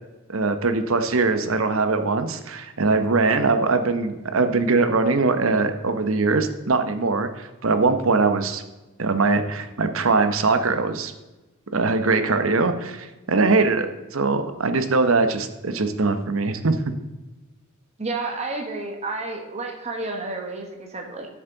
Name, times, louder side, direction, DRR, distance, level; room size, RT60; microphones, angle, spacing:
voice 1, 0.3-8.6 9.0-11.1 11.7-13.9 14.1-16.8, right 3 dB, 75° right, 9 dB, 0.9 m, -21 dB
voice 2, 18.0-21.3, right 3 dB, 30° right, 2 dB, 1.4 m, -31 dB
13.0 x 7.3 x 3.9 m, 1.1 s
head